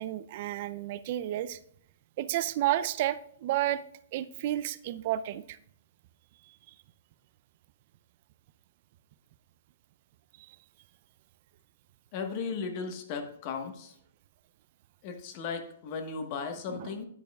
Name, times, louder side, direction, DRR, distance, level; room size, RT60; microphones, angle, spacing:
voice 1, 0.0-1.6 2.2-3.8 4.1-5.6 6.5-6.7 10.4-10.6 16.7-16.9, right 13 dB, 45° right, 14 dB, 0.4 m, -31 dB
voice 2, 12.1-13.9 15.0-17.1, left 5 dB, 40° left, 6 dB, 1.3 m, -36 dB
10.5 x 8.5 x 2.3 m, 0.67 s
hypercardioid pair, 150°, 0 cm